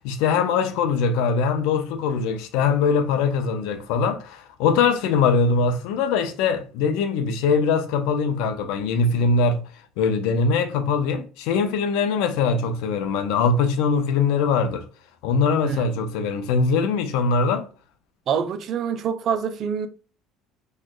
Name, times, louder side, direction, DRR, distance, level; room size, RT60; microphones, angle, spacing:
voice 1, 0.0-9.6 10.0-14.8 15.2-17.7, left 5 dB, 80° left, 0.6 m, -22 dB
voice 2, 18.3-19.9, right 7 dB, 50° right, 0.4 m, -25 dB
3.1 x 2.1 x 3.7 m
cardioid pair, 110°, 0 cm